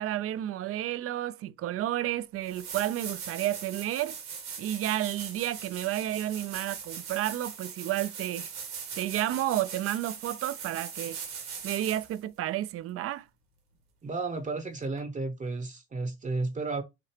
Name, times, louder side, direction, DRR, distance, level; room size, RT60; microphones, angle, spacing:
voice 1, 0.0-4.2 4.6-8.5 9.0-11.2 11.6-13.3, right 13 dB, 45° right, 0.5 m, -31 dB
sound 1, 1.9-2.0 2.4-12.2 15.0-15.1, right 6 dB, 85° right, 1.9 m, -40 dB
voice 2, 14.0-16.8, right 3 dB, 25° right, 0.8 m, -33 dB
5.9 x 2.8 x 3.2 m
hypercardioid pair, 70°, 32 cm